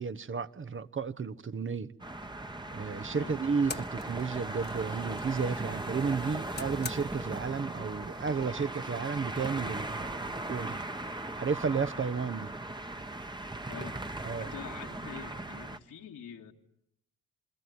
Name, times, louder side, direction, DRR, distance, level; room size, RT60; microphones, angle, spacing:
voice 1, 0.0-1.9 2.7-10.8 11.3-12.5 14.2-14.5, right 5 dB, 35° right, 1.3 m, -33 dB
sound 1, 2.0-15.8, right 2 dB, 15° right, 1.4 m, -38 dB
sound 2, 2.7-13.3, left 4 dB, 30° left, 1.6 m, -50 dB
voice 2, 14.4-16.5, left 8 dB, 65° left, 2.4 m, -45 dB
29.0 x 21.0 x 9.8 m
supercardioid pair, 50°, 33 cm